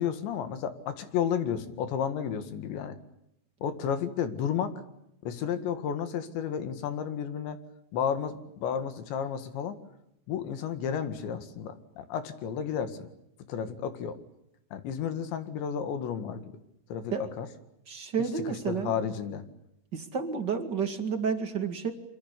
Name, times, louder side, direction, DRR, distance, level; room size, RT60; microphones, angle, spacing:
voice 1, 0.0-3.0 3.6-4.7 5.2-7.6 7.9-9.8 10.3-13.1 13.5-14.2 14.7-16.4 16.9-17.5 18.2-18.3 18.7-19.4, left 8 dB, 70° left, 10 dB, 4.1 m, -32 dB
voice 2, 17.9-18.9 19.9-21.9, right 6 dB, 40° right, 7 dB, 1.5 m, -30 dB
26.0 x 26.0 x 8.4 m, 0.80 s
omnidirectional pair, 5.5 m